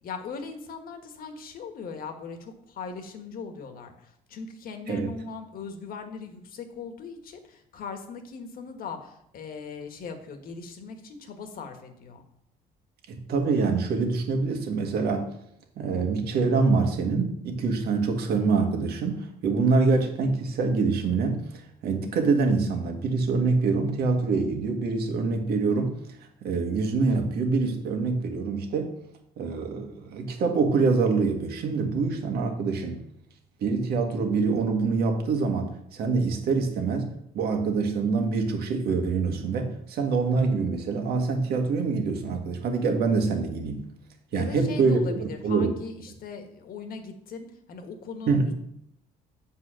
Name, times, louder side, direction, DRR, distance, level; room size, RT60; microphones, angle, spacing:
voice 1, 0.0-12.2 44.3-48.5, left 5 dB, 60° left, 6 dB, 1.5 m, -39 dB
voice 2, 13.1-15.3 15.8-26.0 26.4-28.9 29.4-33.0 33.6-43.8 44.3-45.7 48.3-48.5, right 4 dB, 70° right, 4 dB, 1.6 m, -25 dB
8.2 x 4.8 x 6.4 m, 0.75 s
cardioid pair, 110°, 17 cm